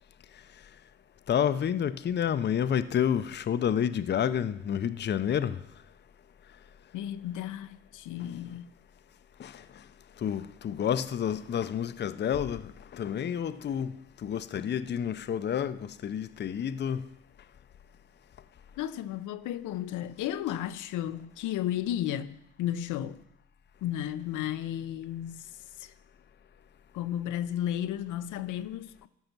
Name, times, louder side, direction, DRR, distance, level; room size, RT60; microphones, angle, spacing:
voice 1, 1.3-5.6 9.4-9.8 10.2-13.9 14.2-17.1, left 9 dB, 35° left, 0.5 m, -29 dB
voice 2, 6.9-8.7 18.8-23.2 23.8-25.9 26.9-29.1, left 11 dB, 80° left, 0.5 m, -34 dB
13.5 x 5.4 x 6.0 m
cardioid pair, 90°, 30 cm